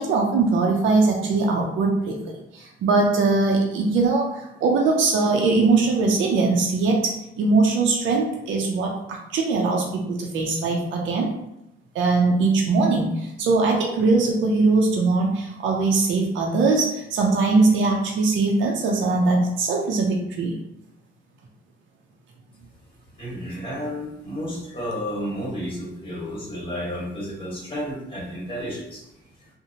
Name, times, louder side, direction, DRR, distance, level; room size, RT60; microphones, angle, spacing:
voice 1, 0.0-11.3 11.9-20.6, right 3 dB, 75° right, 0 dB, 0.5 m, -21 dB
voice 2, 23.2-29.0, equal, 25° left, -5 dB, 1.3 m, -31 dB
2.7 x 2.1 x 2.7 m, 0.84 s
cardioid pair, 90°, 20 cm